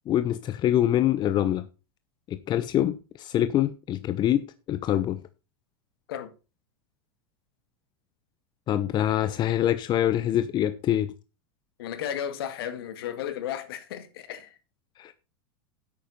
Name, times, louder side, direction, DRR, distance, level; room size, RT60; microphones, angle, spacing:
voice 1, 0.1-1.7 2.3-5.2 8.7-11.1 15.0-15.1, left 12 dB, 35° left, 0.9 m, -25 dB
voice 2, 11.8-14.6, left 9 dB, 70° left, 2.0 m, -34 dB
10.5 x 8.8 x 4.1 m
hypercardioid pair, 100°, 13 cm